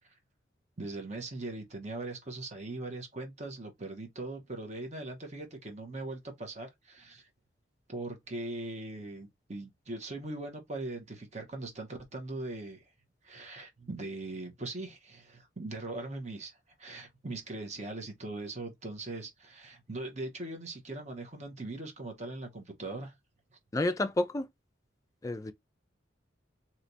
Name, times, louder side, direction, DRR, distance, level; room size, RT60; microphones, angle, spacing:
voice 1, 0.8-7.3 7.9-12.8 13.2-23.1, right 2 dB, 35° right, 0.9 m, -40 dB
voice 2, 23.7-24.5 25.2-25.5, left 1 dB, 15° left, 0.3 m, -30 dB
3.2 x 2.9 x 2.7 m
head